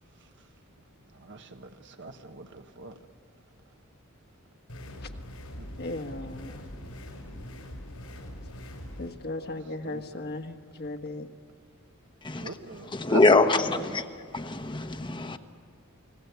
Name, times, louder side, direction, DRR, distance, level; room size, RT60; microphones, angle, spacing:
voice 1, 1.1-3.0 5.6-5.9 9.8-10.2 12.4-13.9, right 3 dB, 60° right, 1.3 m, -41 dB
sound 1, 4.7-9.1, equal, 90° left, 5.6 m, -42 dB
voice 2, 5.8-6.7 9.0-11.3, left 2 dB, 50° left, 1.5 m, -37 dB
voice 3, 12.9-14.1 14.3-15.4, left 3 dB, 25° left, 1.0 m, -23 dB
30.0 x 19.5 x 8.2 m
head